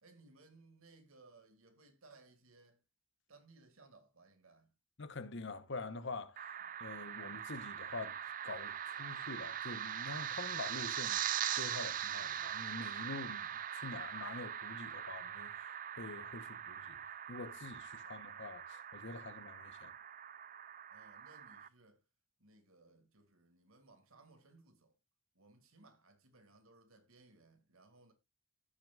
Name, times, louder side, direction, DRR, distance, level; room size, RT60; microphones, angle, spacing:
voice 1, 0.0-2.8 3.3-4.7 6.6-6.7 20.9-22.0 22.4-24.9 25.3-28.1, right 3 dB, 75° right, 2.2 m, -63 dB
voice 2, 5.0-8.2 8.4-11.2 11.5-19.9, left 3 dB, 55° left, 1.0 m, -46 dB
sound 1, 6.4-21.7, right 10 dB, 40° right, 0.4 m, -42 dB
15.0 x 6.4 x 2.4 m
head